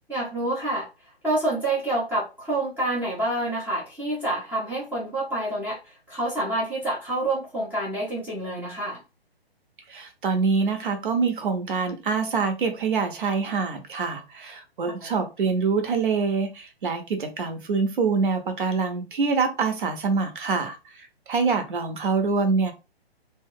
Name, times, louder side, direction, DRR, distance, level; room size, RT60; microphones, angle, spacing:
voice 1, 0.1-0.9 1.2-9.0, right 1 dB, 5° right, -7 dB, 0.7 m, -27 dB
voice 2, 9.9-22.7, right 4 dB, 50° right, 6 dB, 0.9 m, -25 dB
3.0 x 2.2 x 3.5 m, 0.27 s
figure-of-eight pair, 140°, 31 cm